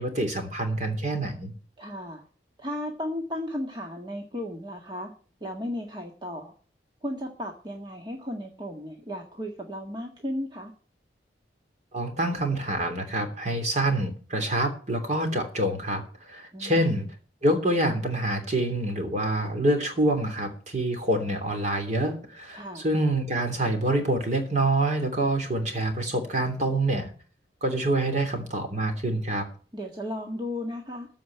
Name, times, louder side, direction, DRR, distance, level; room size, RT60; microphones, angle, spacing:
voice 1, 0.0-1.5 11.9-17.1 17.4-27.1 27.6-29.5, right 1 dB, 40° right, 5 dB, 2.9 m, -26 dB
voice 2, 1.8-2.2 2.6-5.1 5.4-6.5 7.0-10.7 16.5-17.0 22.5-22.8 29.7-31.1, left 1 dB, 25° right, 0 dB, 1.7 m, -35 dB
14.5 x 5.2 x 9.1 m, 0.41 s
head